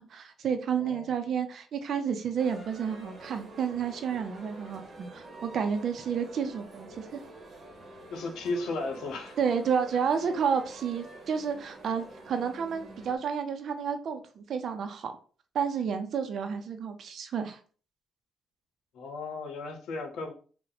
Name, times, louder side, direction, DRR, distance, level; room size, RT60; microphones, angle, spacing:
voice 1, 0.1-7.2 9.4-15.1 15.5-17.6, right 7 dB, 60° right, 0.5 m, -31 dB
sound 1, 2.4-13.2, right 2 dB, 45° right, 0.9 m, -47 dB
voice 2, 8.1-9.4 18.9-20.3, left 3 dB, 80° left, 0.7 m, -35 dB
2.7 x 2.1 x 3.9 m
cardioid pair, 90°, 0 cm